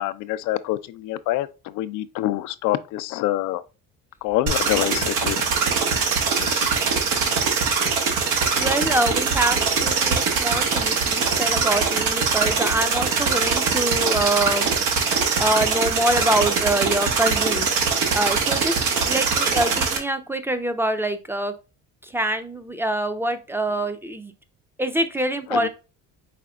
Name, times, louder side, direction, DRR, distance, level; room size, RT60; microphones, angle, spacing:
voice 1, 0.0-3.6 4.2-5.6 6.4-6.6 25.5-25.7, left 15 dB, 65° left, 0.5 m, -26 dB
sound 1, 4.5-20.0, right 5 dB, 85° right, 1.2 m, -22 dB
voice 2, 8.6-14.7 15.4-17.7 18.1-21.5 22.0-24.3 24.8-25.7, right 1 dB, 5° right, 0.6 m, -25 dB
5.0 x 4.1 x 2.3 m
supercardioid pair, 85°, 32 cm